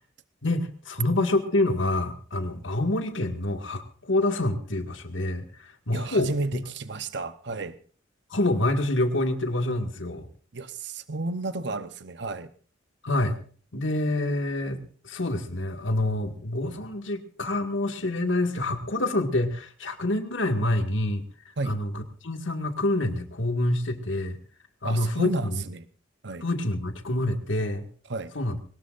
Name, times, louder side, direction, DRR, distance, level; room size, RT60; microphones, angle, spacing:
voice 1, 0.4-6.6 8.3-10.3 13.0-13.4 13.7-24.4 24.8-25.6 26.4-27.9 28.3-28.6, left 1 dB, 80° left, 6 dB, 2.0 m, -27 dB
voice 2, 5.9-7.8 10.5-12.5 21.6-21.8 24.8-25.8 26.2-26.4 28.1-28.3, right 3 dB, 60° right, 12 dB, 0.9 m, -32 dB
22.0 x 19.0 x 2.6 m, 0.42 s
head